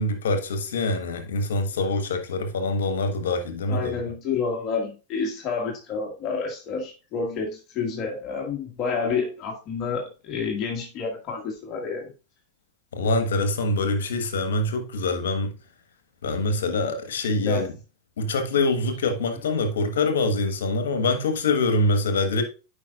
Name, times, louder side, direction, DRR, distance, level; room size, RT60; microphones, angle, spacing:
voice 1, 0.0-4.0 12.9-15.5 16.2-17.7 18.2-22.4, left 2 dB, 80° left, 1.4 m, -24 dB
voice 2, 3.7-12.1 17.4-17.6, left 5 dB, 40° left, 2.0 m, -29 dB
9.0 x 5.2 x 2.5 m
hypercardioid pair, 100°, 0 cm